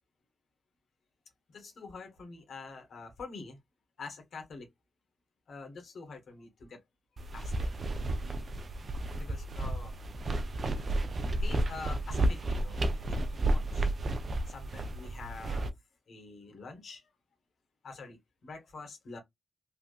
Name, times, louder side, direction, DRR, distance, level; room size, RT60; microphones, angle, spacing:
voice 1, 1.5-3.6 4.0-4.7 5.5-6.8 7.3-7.9 9.1-10.0 11.4-13.9 14.5-15.7 16.1-17.1 17.8-19.2, left 4 dB, 75° left, 1.3 m, -46 dB
sound 1, 7.2-15.7, right 1 dB, 55° right, 0.5 m, -32 dB
3.3 x 2.7 x 2.4 m
cardioid pair, 75°, 0 cm